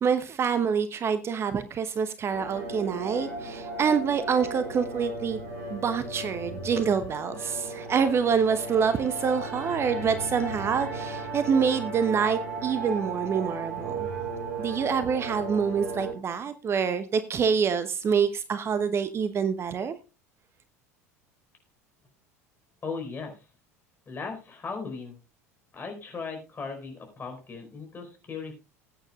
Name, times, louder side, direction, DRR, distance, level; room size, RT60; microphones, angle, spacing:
voice 1, 0.0-5.4 5.7-14.1 14.6-19.9, right 6 dB, 30° right, 11 dB, 0.9 m, -26 dB
sound 1, 2.3-16.1, right 3 dB, 70° right, 3.4 m, -35 dB
voice 2, 22.8-23.5 24.1-25.2 25.7-28.5, left 4 dB, 25° left, 4 dB, 4.6 m, -37 dB
20.0 x 9.1 x 2.4 m, 0.30 s
figure-of-eight pair, 70°, 8 cm